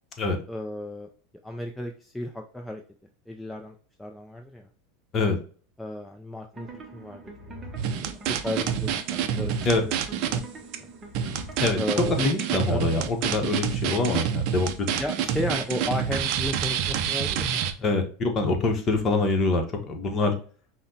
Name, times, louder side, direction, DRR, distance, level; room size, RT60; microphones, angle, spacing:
voice 1, 0.5-1.1 1.4-2.8 3.3-4.7 5.8-9.6 10.1-10.9 11.7-12.1 12.7-12.8 15.0-17.7, left 1 dB, 5° left, 2 dB, 0.4 m, -34 dB
sound 1, 6.5-12.1, right 1 dB, 25° right, 0.7 m, -44 dB
sound 2, 7.8-10.4 10.7-10.8 11.1-17.7, right 8 dB, 55° right, 0.4 m, -27 dB
voice 2, 12.2-14.7 17.8-20.3, left 3 dB, 30° left, 4 dB, 0.9 m, -24 dB
5.6 x 2.1 x 2.7 m, 0.40 s
supercardioid pair, 115°, 0 cm